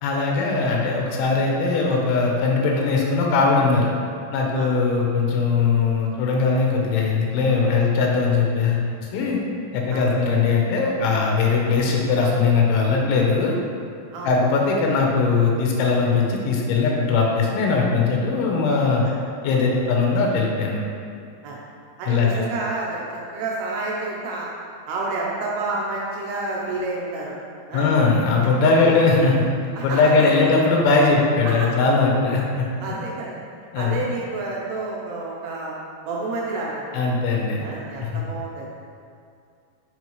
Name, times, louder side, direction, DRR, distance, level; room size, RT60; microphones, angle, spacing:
voice 1, 0.0-3.9 4.3-9.4 9.7-13.5 14.2-19.0 19.4-20.8 22.1-22.5 27.7-29.5 29.8-32.7 33.7-34.0 36.9-37.6 38.0-38.1, left 4 dB, 85° left, -1 dB, 3.3 m, -20 dB
voice 2, 22.0-24.5 24.9-27.3 27.7-27.9 28.7-29.2 29.8-30.6 31.4-31.7 32.8-33.4 33.8-35.7 36.1-37.0 37.6-38.7, right 3 dB, 80° right, -4 dB, 2.7 m, -29 dB
7.5 x 5.5 x 3.1 m, 2.4 s
omnidirectional pair, 5.3 m